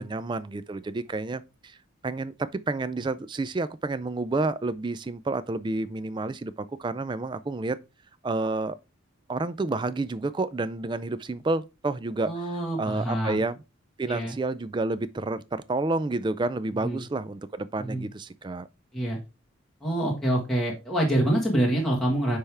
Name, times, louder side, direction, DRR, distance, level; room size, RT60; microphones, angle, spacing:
voice 1, 0.0-1.8 2.0-7.8 8.2-8.8 9.3-12.3 12.8-13.6 14.0-18.7, right 2 dB, 20° right, 0.3 m, -30 dB
voice 2, 12.3-13.4 14.0-14.3 16.8-17.0 17.8-18.0 18.9-19.2 19.8-22.4, right 1 dB, ahead, 1.5 m, -26 dB
9.7 x 3.5 x 3.3 m
head